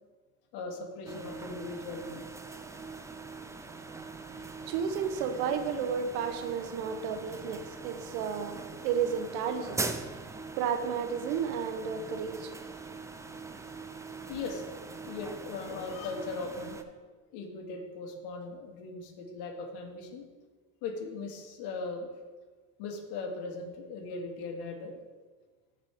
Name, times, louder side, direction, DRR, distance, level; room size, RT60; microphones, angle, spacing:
voice 1, 0.5-2.2 2.5-2.8 14.3-16.8 17.3-20.3 20.8-22.1 22.8-25.0, left 3 dB, 65° left, 2 dB, 2.1 m, -39 dB
sound 1, 1.1-16.8, right 3 dB, 5° right, 0.4 m, -42 dB
voice 2, 4.7-12.5, right 7 dB, 70° right, 8 dB, 1.1 m, -33 dB
14.5 x 5.1 x 3.6 m, 1.4 s
supercardioid pair, 105°, 43 cm